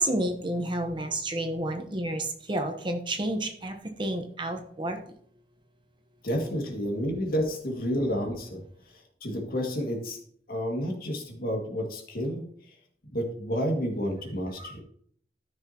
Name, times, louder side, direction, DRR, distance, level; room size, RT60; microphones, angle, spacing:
voice 1, 0.0-5.0 14.6-14.8, right 1 dB, 25° right, 5 dB, 1.0 m, -30 dB
voice 2, 6.2-8.6 9.2-10.2 10.5-12.4 13.1-14.8, equal, 55° left, 1 dB, 2.1 m, -30 dB
13.5 x 6.2 x 2.9 m, 0.62 s
head